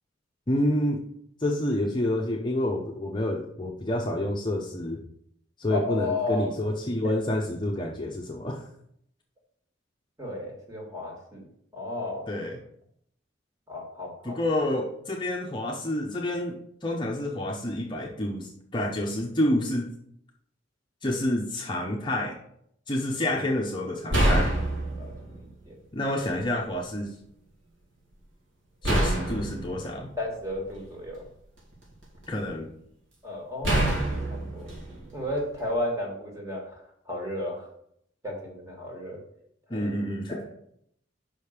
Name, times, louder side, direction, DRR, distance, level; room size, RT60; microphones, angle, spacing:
voice 1, 0.5-1.0 1.4-5.0 5.6-8.6 12.3-12.6 14.2-19.9 21.0-22.4 22.9-24.6 25.9-27.1 28.8-30.1 32.3-32.7 39.7-40.4, left 1 dB, 25° left, 0 dB, 0.7 m, -28 dB
voice 2, 5.7-6.5 7.0-7.1 10.2-11.5 11.7-12.3 13.7-14.4 25.0-25.8 28.8-29.0 30.2-31.2 33.2-34.7 35.1-37.7 38.2-39.2 39.7-39.9 40.3-40.5, left 1 dB, 15° right, -1 dB, 2.0 m, -33 dB
sound 1, 23.3-23.5 24.1-25.4 26.3-26.4 28.8-31.0 31.6-32.4 33.6-35.7, right 1 dB, 85° right, 2.4 m, -27 dB
5.7 x 5.2 x 6.6 m, 0.71 s
head